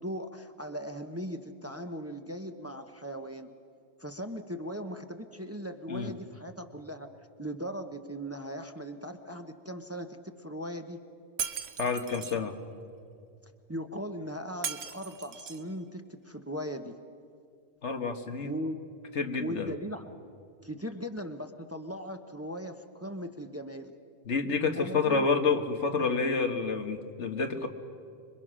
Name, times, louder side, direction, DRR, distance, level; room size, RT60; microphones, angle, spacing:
voice 1, 0.0-3.5 4.0-7.1 7.4-11.0 13.7-16.9 18.4-18.8 19.4-20.1 20.6-23.9 24.7-25.3, equal, 15° right, 6 dB, 0.9 m, -38 dB
Shatter, 11.4-12.4 14.6-15.7, right 6 dB, 70° right, 1.2 m, -37 dB
voice 2, 11.8-12.6 17.8-18.5 19.2-19.7 24.3-27.7, left 4 dB, 80° left, 6 dB, 1.7 m, -29 dB
26.0 x 23.0 x 6.3 m, 2.4 s
omnidirectional pair, 1.2 m